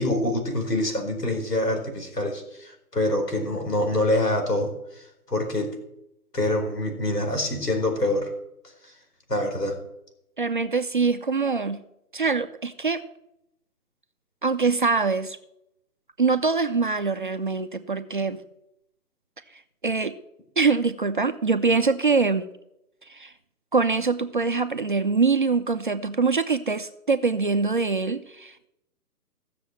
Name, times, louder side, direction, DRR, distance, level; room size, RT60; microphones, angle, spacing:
voice 1, 0.0-5.7 6.3-8.3 8.8-8.9 9.3-9.8, left 1 dB, 90° left, 4 dB, 4.6 m, -26 dB
voice 2, 10.4-11.8 12.1-13.0 14.4-15.4 16.2-18.4 19.8-20.1 20.6-22.5 23.1-23.3 23.7-28.7, right 4 dB, 35° right, 9 dB, 0.5 m, -24 dB
15.5 x 6.8 x 7.3 m, 0.82 s
figure-of-eight pair, 145°, 47 cm